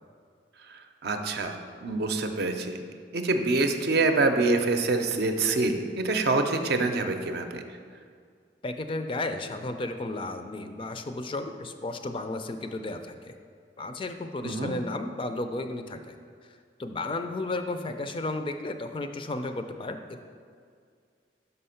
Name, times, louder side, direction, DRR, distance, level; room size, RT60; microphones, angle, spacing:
voice 1, 1.0-2.9 3.1-7.6 14.4-14.7, right 3 dB, 65° right, 6 dB, 0.6 m, -26 dB
voice 2, 8.6-13.3 13.8-16.1 16.8-20.2, left 2 dB, 30° left, 7 dB, 0.4 m, -33 dB
5.8 x 5.5 x 5.6 m, 2.1 s
head